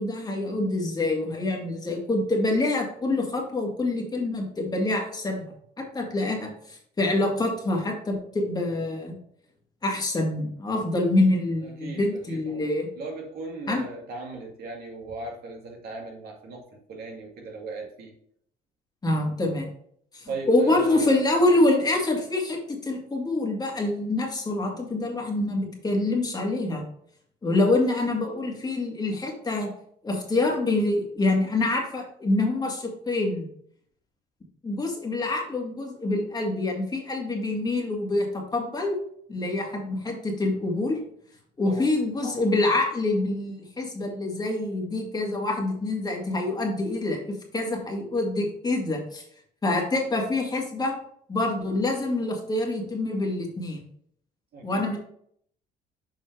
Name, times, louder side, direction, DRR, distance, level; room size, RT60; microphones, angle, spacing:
voice 1, 0.0-5.4 5.8-9.1 9.8-12.9 13.7-13.8 19.0-19.7 20.1-26.8 27.4-29.7 30.0-33.5 34.6-38.9 39.3-41.0 41.6-49.2 49.6-50.9 51.3-53.9 54.6-55.0, left 2 dB, 25° left, 0 dB, 1.9 m, -26 dB
voice 2, 11.6-12.0 12.3-12.6 13.0-18.1 20.3-21.2 41.6-41.9 54.5-54.9, right 3 dB, 65° right, 0 dB, 2.2 m, -37 dB
7.0 x 5.2 x 3.3 m, 0.65 s
cardioid pair, 110°, 17 cm